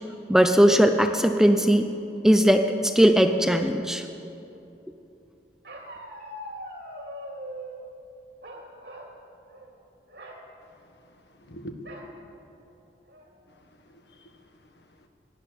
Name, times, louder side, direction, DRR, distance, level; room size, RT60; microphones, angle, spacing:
voice 1, 0.3-1.9 2.2-4.0, equal, 5° right, 7 dB, 0.5 m, -19 dB
Bark, 5.6-7.8 8.4-9.2 9.5-9.7 10.1-10.4 11.8-12.1 12.7-12.8 13.1-13.5, equal, 70° right, 2.5 m, -41 dB
voice 2, 10.8-11.7 13.5-15.1, right 1 dB, 70° left, 5 dB, 1.5 m, -47 dB
18.0 x 11.0 x 6.8 m, 2.8 s
head